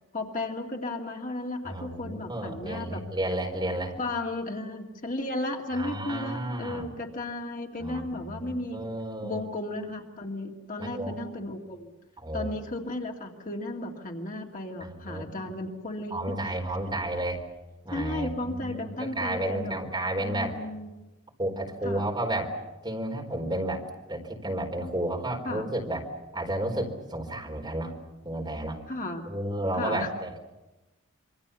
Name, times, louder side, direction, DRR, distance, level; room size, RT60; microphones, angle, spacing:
voice 1, 0.1-3.0 4.0-8.8 9.2-11.9 12.3-16.3 17.9-19.7 20.2-20.9 21.8-22.1 25.4-25.7 28.9-29.3 29.7-30.1, left 2 dB, 40° left, 2 dB, 2.3 m, -34 dB
voice 2, 1.6-4.0 5.7-7.0 7.8-9.4 10.8-11.2 12.2-12.5 14.8-15.5 16.1-17.4 17.8-20.6 21.4-22.5 22.8-23.8 24.1-26.0 26.3-27.9 28.2-28.8 29.3-30.4, right 1 dB, 20° right, 1 dB, 4.2 m, -32 dB
27.0 x 24.5 x 7.0 m, 1.1 s
head